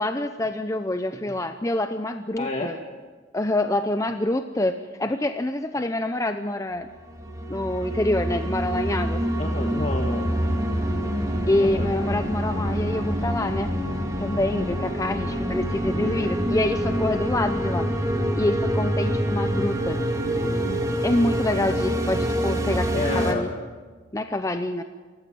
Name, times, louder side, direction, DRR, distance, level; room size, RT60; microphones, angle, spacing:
voice 1, 0.0-2.8 3.3-6.9 7.5-9.2 11.5-13.7 14.2-17.9 18.4-20.0 21.0-23.5 24.1-24.8, left 1 dB, 15° left, 8 dB, 0.6 m, -26 dB
voice 2, 2.4-2.7 9.4-10.3 11.6-11.9 15.8-16.2 20.2-21.1 22.9-23.4, left 2 dB, 35° left, 2 dB, 1.6 m, -31 dB
sound 1, 7.1-23.3, equal, 20° right, 2.2 m, -26 dB
29.5 x 14.5 x 7.7 m, 1.4 s
head